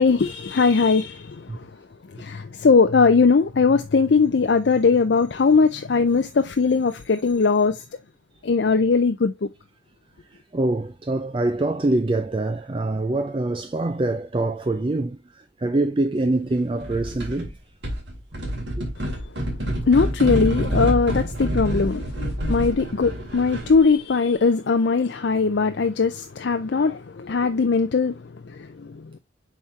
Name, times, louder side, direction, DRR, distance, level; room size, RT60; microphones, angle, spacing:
voice 1, 0.0-1.7 2.2-7.8 8.4-9.5 19.9-22.0 22.5-29.2, left 4 dB, 60° left, 0.5 m, -20 dB
voice 2, 10.3-17.6 18.8-18.9, right 2 dB, 25° right, 0.4 m, -25 dB
sound 1, 16.8-17.5 17.8-23.9, equal, 65° right, 2.5 m, -27 dB
7.3 x 4.3 x 3.2 m
head